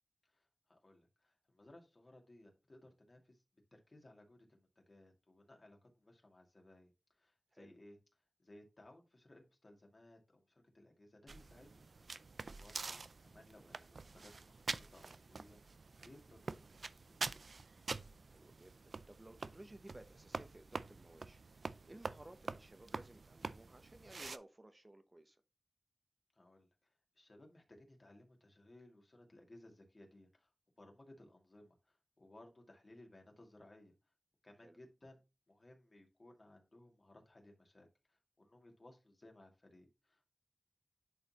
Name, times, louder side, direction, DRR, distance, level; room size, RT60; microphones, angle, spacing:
voice 1, 0.2-3.4 3.7-8.0 8.4-11.9 12.2-15.6 16.0-17.2 26.3-30.5 30.8-33.9 34.4-40.4, left 1 dB, 55° left, 2.3 m, -62 dB
sound 1, 11.3-24.4, right 4 dB, 80° right, 0.3 m, -46 dB
voice 2, 13.6-13.9 18.2-25.4 34.6-34.8, right 1 dB, 35° right, 0.8 m, -58 dB
10.5 x 4.0 x 2.9 m
cardioid pair, 45°, 0 cm